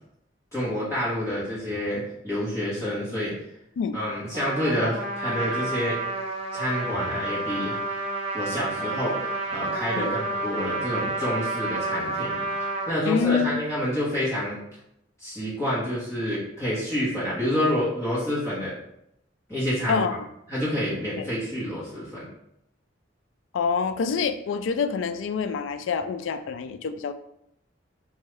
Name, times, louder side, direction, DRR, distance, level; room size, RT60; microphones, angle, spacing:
voice 1, 0.5-3.3 3.9-6.0 6.5-7.8 8.3-14.6 15.2-18.7 19.5-20.0 20.5-22.3, equal, 15° left, -9 dB, 1.0 m, -28 dB
Trumpet, 4.3-12.9, right 2 dB, 30° right, 0.7 m, -30 dB
voice 2, 13.1-13.6 19.9-20.1 21.2-21.3 23.5-27.1, left 6 dB, 80° left, 9 dB, 0.3 m, -26 dB
4.4 x 2.3 x 3.1 m, 0.77 s
head